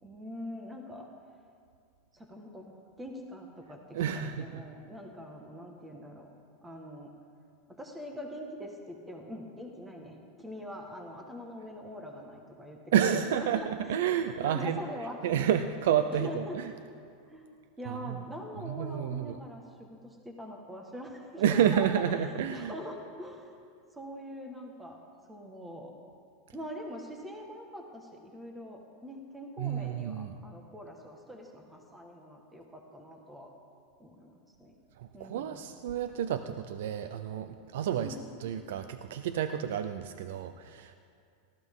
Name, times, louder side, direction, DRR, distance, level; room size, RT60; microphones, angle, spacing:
voice 1, 0.0-1.1 2.1-6.3 6.6-7.1 7.8-12.8 13.1-13.7 14.3-15.3 16.1-16.6 17.3-17.5 17.8-22.0 22.5-23.6 23.9-25.0 25.3-25.9 26.5-33.5 34.0-34.3 34.6-34.7 35.1-35.6 38.0-38.3, equal, 10° right, 1 dB, 1.6 m, -43 dB
voice 2, 3.9-4.6 12.9-14.8 15.2-16.7 17.9-18.2 18.7-19.4 21.4-22.7 29.6-30.4 35.0-38.2 38.4-40.9, right 9 dB, 75° right, 10 dB, 0.6 m, -30 dB
18.5 x 14.0 x 3.7 m, 2.3 s
supercardioid pair, 135°, 0 cm